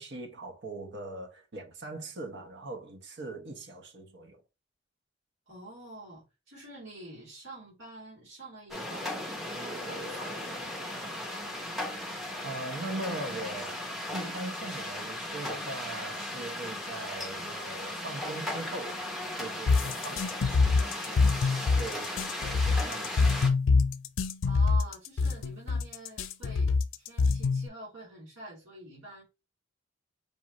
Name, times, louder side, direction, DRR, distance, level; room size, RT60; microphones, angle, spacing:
voice 1, 0.0-4.4 12.4-19.0 19.4-23.4, right 2 dB, 60° right, 1.0 m, -41 dB
voice 2, 5.5-9.2 9.4-11.3 24.4-29.3, right 2 dB, 75° right, 2.6 m, -47 dB
sound 1, 8.7-23.5, left 1 dB, ahead, 0.9 m, -37 dB
sound 2, 19.7-27.7, left 4 dB, 85° left, 0.4 m, -25 dB
5.3 x 2.6 x 3.0 m
head